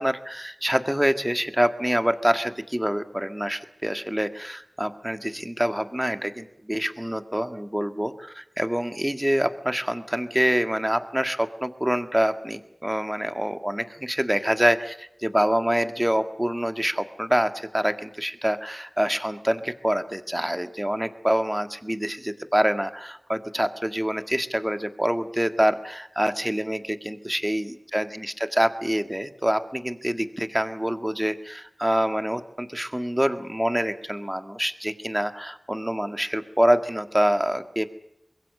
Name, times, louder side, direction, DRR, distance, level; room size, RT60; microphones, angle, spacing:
voice 1, 0.0-37.9, equal, 10° right, 9 dB, 1.8 m, -26 dB
25.0 x 21.5 x 6.7 m, 0.82 s
wide cardioid pair, 50°, 0 cm